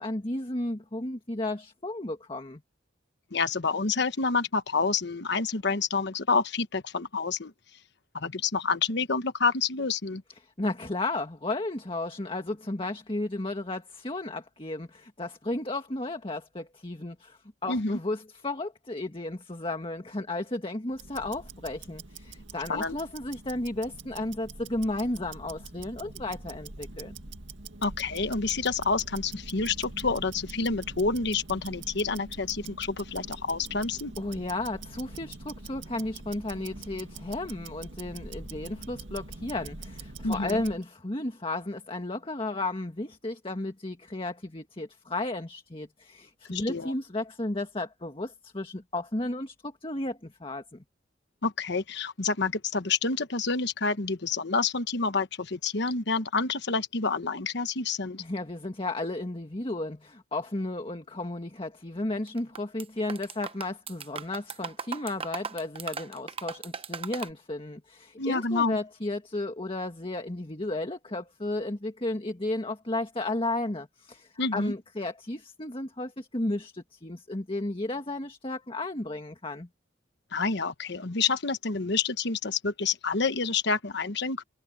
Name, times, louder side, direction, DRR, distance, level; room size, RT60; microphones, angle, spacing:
voice 1, 0.0-2.6 10.4-27.1 34.2-50.8 58.2-79.7, left 2 dB, 30° left, 1.7 m, -33 dB
voice 2, 3.3-7.5 8.1-10.2 17.7-18.0 22.7-22.9 27.8-34.1 40.2-40.6 46.5-46.9 51.4-58.2 68.2-68.8 74.4-74.7 80.3-84.4, left 4 dB, 65° left, 1.2 m, -28 dB
Tick-tock, 20.9-40.8, right 3 dB, 75° right, 2.1 m, -44 dB
sound 1, 62.3-62.8 63.1-67.3, right 6 dB, 30° right, 0.9 m, -37 dB
head